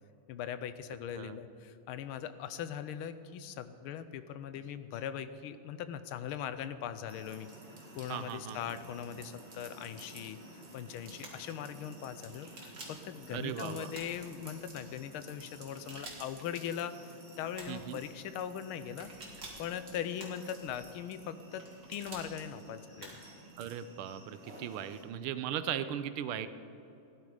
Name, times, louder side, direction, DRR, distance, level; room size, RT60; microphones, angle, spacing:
voice 1, 0.3-7.5 8.0-10.4 10.7-19.1 19.6-21.6 21.9-23.2, left 9 dB, 80° left, 12 dB, 1.5 m, -40 dB
sound 1, 7.1-25.0, right 1 dB, 30° right, 2.4 m, -53 dB
voice 2, 8.1-8.6 13.3-13.9 17.7-18.0 23.6-26.5, right 10 dB, 80° right, 12 dB, 1.5 m, -38 dB
sound 2, 11.2-11.5 12.4-13.1 13.9-14.5 15.7-16.4 17.5-17.9 19.0-19.7 20.2-20.7 21.6-22.3 23.0-23.4, right 2 dB, 55° right, 2.9 m, -49 dB
17.0 x 11.0 x 4.9 m, 2.9 s
omnidirectional pair, 2.4 m